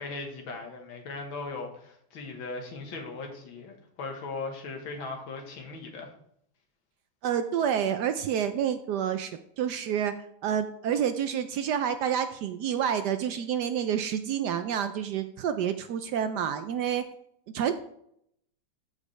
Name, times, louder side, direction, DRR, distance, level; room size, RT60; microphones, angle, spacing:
voice 1, 0.0-6.1, left 3 dB, 75° left, 2 dB, 2.2 m, -38 dB
voice 2, 7.2-10.1 10.4-17.1 17.5-17.7, right 8 dB, 75° right, 9 dB, 1.0 m, -28 dB
13.5 x 5.0 x 3.2 m, 0.70 s
omnidirectional pair, 2.2 m